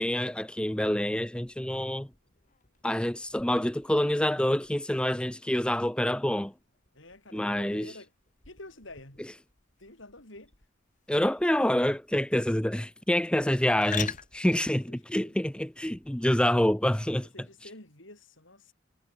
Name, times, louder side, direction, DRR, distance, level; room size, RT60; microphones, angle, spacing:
voice 1, 0.0-2.1 2.8-6.5 7.3-7.9 11.1-17.3, left 1 dB, 5° left, 0.6 m, -27 dB
sound 1, 1.3-16.3, left 8 dB, 40° left, 2.5 m, -47 dB
voice 2, 6.9-8.1 8.5-9.3 9.8-10.5 14.9-15.4 17.3-18.7, left 2 dB, 70° left, 7.6 m, -49 dB
head